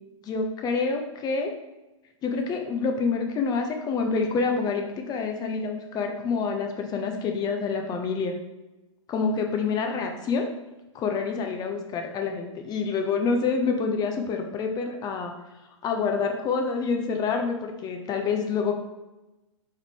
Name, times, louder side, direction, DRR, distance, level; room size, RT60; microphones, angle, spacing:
voice 1, 0.2-1.5 2.2-8.3 9.1-10.4 10.9-15.3 15.8-18.7, left 5 dB, 25° left, 4 dB, 0.5 m, -27 dB
3.5 x 3.2 x 3.6 m, 1.0 s
hypercardioid pair, 120°, 17 cm